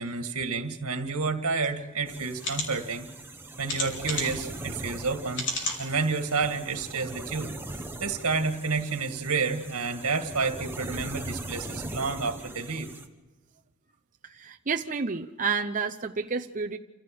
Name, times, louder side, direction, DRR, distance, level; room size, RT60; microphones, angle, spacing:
voice 1, 0.0-3.1 3.6-7.5 8.0-12.9, right 4 dB, 70° right, 6 dB, 2.1 m, -30 dB
sound 1, 1.6-1.7 2.4-2.7 3.7-4.4 5.3-5.8 6.4-6.5 6.8-6.9, left 2 dB, 55° left, 4.7 m, -31 dB
sound 2, 2.1-13.1, right 2 dB, 10° right, 1.3 m, -40 dB
voice 2, 14.2-16.8, right 5 dB, 35° right, 4 dB, 0.8 m, -30 dB
28.0 x 16.0 x 7.8 m, 1.2 s
head